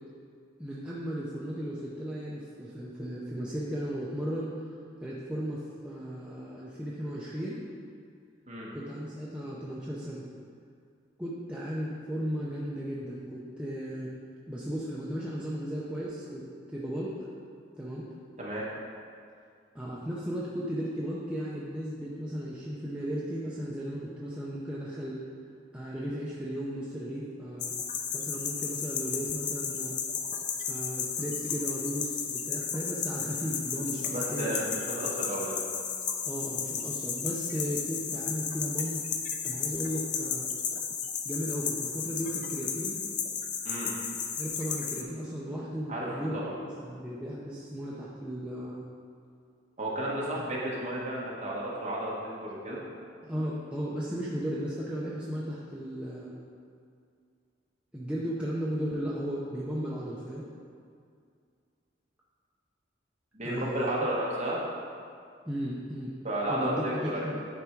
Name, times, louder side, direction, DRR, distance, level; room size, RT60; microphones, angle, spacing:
voice 1, 0.6-4.5 5.0-7.7 8.7-10.2 11.2-14.1 14.5-17.1 17.8-18.1 19.7-25.2 25.7-27.7 28.1-30.0 30.6-34.6 36.2-39.0 39.4-40.5 41.2-43.0 44.4-48.8 50.3-50.5 53.2-56.4 57.9-60.4 63.4-63.9 65.4-66.1 66.5-67.4, equal, 5° right, -7 dB, 0.6 m, -35 dB
voice 2, 18.4-18.7 34.0-35.6 43.6-44.0 45.9-46.1 46.3-46.5 49.8-52.1 52.4-53.4 63.3-64.6 66.2-67.3, right 1 dB, 35° right, -5 dB, 1.4 m, -33 dB
sound 1, 27.6-45.0, left 6 dB, 40° left, 0.4 m, -33 dB
10.5 x 3.6 x 4.5 m, 2.3 s
head